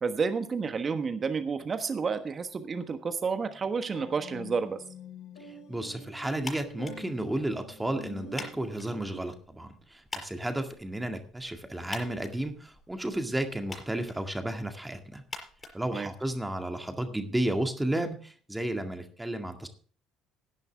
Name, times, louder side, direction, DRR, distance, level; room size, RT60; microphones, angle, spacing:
voice 1, 0.0-4.8 15.9-16.1, right 5 dB, 35° right, 9 dB, 1.3 m, -30 dB
sound 1, 3.4-9.2, left 1 dB, 70° left, 4.6 m, -46 dB
voice 2, 5.4-15.2 15.7-19.7, right 1 dB, 10° right, 5 dB, 2.0 m, -33 dB
sound 2, 6.4-16.6, left 3 dB, 25° left, 5.2 m, -47 dB
16.5 x 10.5 x 3.5 m, 0.43 s
figure-of-eight pair, 55°, 0 cm